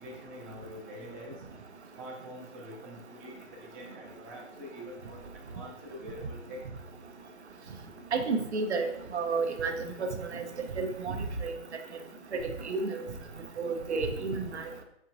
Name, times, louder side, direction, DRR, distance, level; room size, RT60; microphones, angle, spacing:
voice 1, 0.0-1.4 2.0-5.2 5.5-6.6, equal, 15° right, -4 dB, 0.6 m, -45 dB
voice 2, 8.1-8.9 9.1-10.4 10.8-11.2 11.4-11.5 12.3-13.0 13.6-14.6, right 4 dB, 65° right, 4 dB, 0.8 m, -31 dB
4.6 x 4.5 x 2.5 m, 0.78 s
figure-of-eight pair, 140°, 36 cm